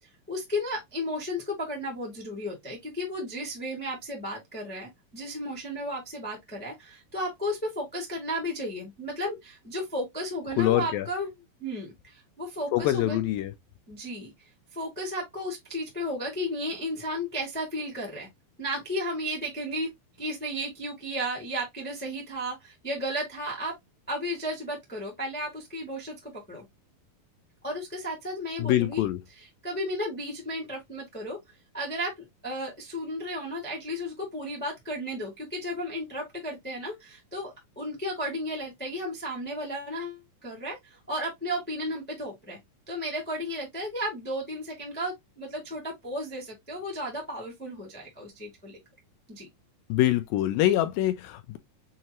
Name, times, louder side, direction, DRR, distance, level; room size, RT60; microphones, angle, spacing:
voice 1, 0.3-11.3 11.6-13.2 13.9-18.3 18.6-19.9 20.2-23.7 24.1-26.6 27.6-31.4 31.7-42.6 42.9-48.8 49.3-49.5, equal, 5° left, 0.7 m, -34 dB
voice 2, 10.6-11.1 12.7-13.5 28.6-29.2 49.9-51.6, left 14 dB, 80° left, 2.2 m, -24 dB
6.4 x 2.8 x 2.8 m
omnidirectional pair, 4.3 m